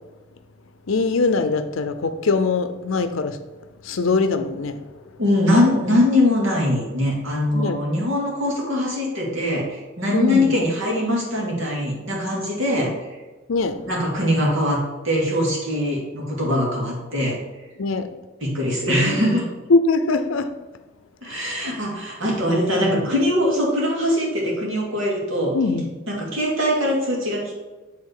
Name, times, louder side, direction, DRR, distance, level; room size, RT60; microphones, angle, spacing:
voice 1, 0.9-3.4 3.8-4.8 7.5-7.8 10.1-10.5 13.5-13.8 17.8-18.1 19.7-20.5 21.3-21.7 22.9-23.0 25.5-25.9, left 3 dB, 80° left, 0.6 m, -22 dB
voice 2, 5.2-13.1 13.9-17.4 18.4-19.4 21.2-25.5 26.1-27.6, left 1 dB, 70° right, 2.3 m, -22 dB
7.6 x 3.7 x 4.8 m
head